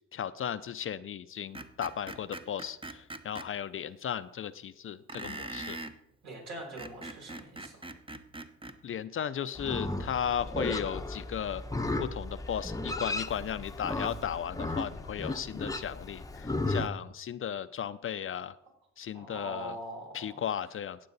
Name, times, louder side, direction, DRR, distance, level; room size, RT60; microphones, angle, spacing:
voice 1, 0.1-5.8 8.8-11.6 12.0-18.6 19.0-19.8 20.1-21.0, left 9 dB, 45° left, 13 dB, 0.5 m, -35 dB
Screech, 1.5-3.5 5.1-6.0 6.6-8.8, right 2 dB, 15° right, 0.8 m, -42 dB
voice 2, 6.2-7.9 19.1-20.4, right 1 dB, 65° right, -2 dB, 5.6 m, -42 dB
Livestock farm animals working animals, 9.5-16.9, left 2 dB, 10° left, 0.8 m, -35 dB
16.5 x 7.6 x 4.0 m, 0.78 s
cardioid pair, 90°, 30 cm